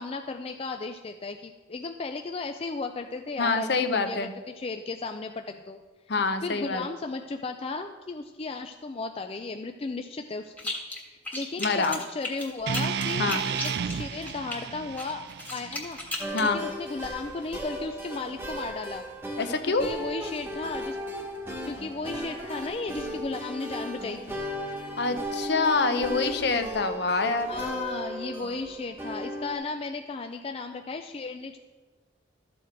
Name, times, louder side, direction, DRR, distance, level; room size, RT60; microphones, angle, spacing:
voice 1, 0.0-5.8 6.4-10.7 11.1-15.2 15.5-16.0 16.4-19.0 19.7-21.0 21.7-24.4 27.5-31.6, left 3 dB, 30° left, 6 dB, 0.4 m, -35 dB
voice 2, 3.4-4.3 6.1-6.8 11.6-12.0 13.2-13.4 16.3-16.6 19.4-19.9 25.0-27.5, left 3 dB, 60° left, 8 dB, 0.8 m, -26 dB
sound 1, 10.6-11.0 11.2-14.6 15.0-16.5, left 2 dB, 10° left, 1.4 m, -35 dB
sound 2, 12.7-16.8, right 7 dB, 55° right, 0.3 m, -33 dB
sound 3, 16.2-29.5, equal, 10° right, 1.2 m, -36 dB
13.0 x 7.1 x 4.6 m, 1.3 s
head